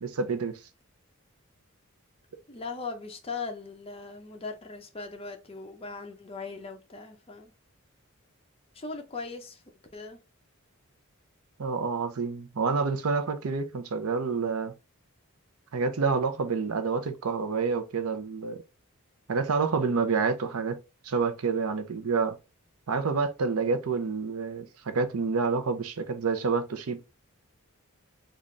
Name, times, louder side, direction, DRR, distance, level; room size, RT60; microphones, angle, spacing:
voice 1, 0.0-0.6 11.6-14.7 15.7-18.6 19.3-20.8 21.0-22.4 22.9-27.0, right 4 dB, 85° right, 0.6 m, -28 dB
voice 2, 2.5-7.5 8.7-9.6 9.9-10.2, left 4 dB, 25° left, 0.6 m, -39 dB
3.8 x 2.4 x 3.2 m
head